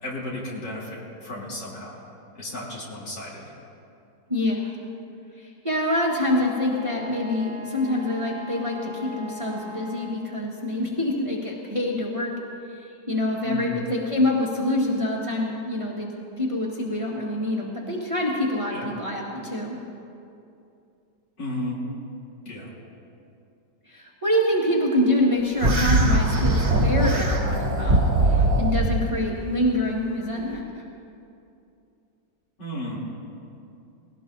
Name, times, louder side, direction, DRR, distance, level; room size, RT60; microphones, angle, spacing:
voice 1, 0.0-1.9 2.4-3.5 13.4-13.8 18.7-18.9 21.4-21.8 22.4-22.7 32.6-33.0, left 1 dB, 70° left, -6 dB, 3.8 m, -33 dB
voice 2, 4.3-4.7 5.4-12.4 12.7-16.1 16.4-19.8 23.9-30.8, left 1 dB, 20° right, -4 dB, 1.5 m, -26 dB
Wind instrument woodwind instrument, 6.7-10.4, left 2 dB, 70° right, 1.8 m, -38 dB
sound 1, 25.6-29.0, right 1 dB, 35° right, 1.7 m, -21 dB
21.0 x 17.5 x 2.7 m, 2.6 s
omnidirectional pair, 2.0 m